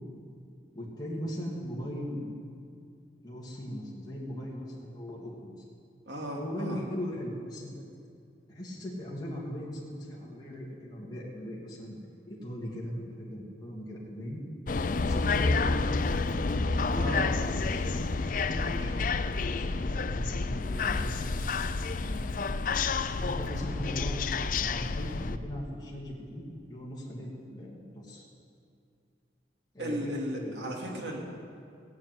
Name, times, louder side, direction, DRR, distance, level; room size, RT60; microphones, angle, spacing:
voice 1, 0.7-2.4 3.2-5.6 6.4-7.8 8.5-12.0 12.3-14.4 14.9-16.1 16.9-19.2 19.5-21.2 22.0-22.7 23.1-26.4 26.7-28.2 29.7-30.7 31.0-31.1, equal, 25° left, -5 dB, 2.7 m, -39 dB
voice 2, 6.1-6.8 17.0-17.2 29.8-31.2, equal, 80° right, -1 dB, 2.9 m, -35 dB
sound 1, 14.7-25.4, left 4 dB, 50° left, 0.5 m, -29 dB
18.5 x 7.4 x 9.5 m, 2.4 s
head